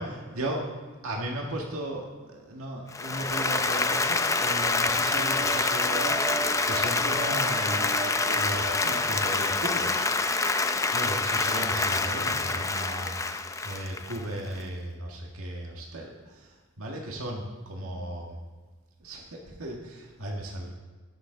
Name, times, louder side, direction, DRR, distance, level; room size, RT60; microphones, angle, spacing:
voice 1, 0.0-0.6 1.0-8.0 8.3-10.1 10.9-18.4 19.0-20.7, right 1 dB, 90° right, -1 dB, 1.7 m, -36 dB
Applause, 2.9-14.6, left 3 dB, 15° left, 0.5 m, -26 dB
sound 1, 3.1-9.9, right 3 dB, 30° right, 1.1 m, -39 dB
19.5 x 7.0 x 3.8 m, 1.4 s
head